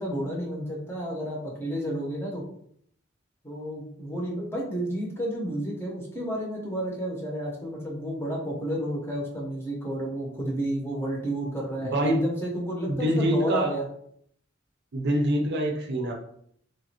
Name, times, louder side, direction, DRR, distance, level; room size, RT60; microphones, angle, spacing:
voice 1, 0.0-2.4 3.4-13.8, right 1 dB, 10° left, -3 dB, 0.7 m, -31 dB
voice 2, 11.8-12.2 12.9-13.7 14.9-16.1, right 1 dB, 55° right, 2 dB, 0.5 m, -25 dB
3.0 x 2.4 x 2.8 m, 0.66 s
head